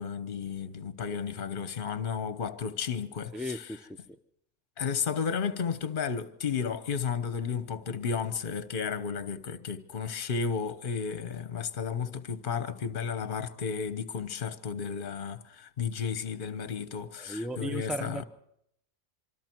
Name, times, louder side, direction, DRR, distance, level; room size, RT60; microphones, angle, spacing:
voice 1, 0.0-3.7 4.8-18.2, left 6 dB, 45° left, 1.1 m, -33 dB
voice 2, 3.3-4.0 17.2-18.2, equal, ahead, 0.7 m, -36 dB
25.5 x 25.0 x 4.6 m
omnidirectional pair, 1.3 m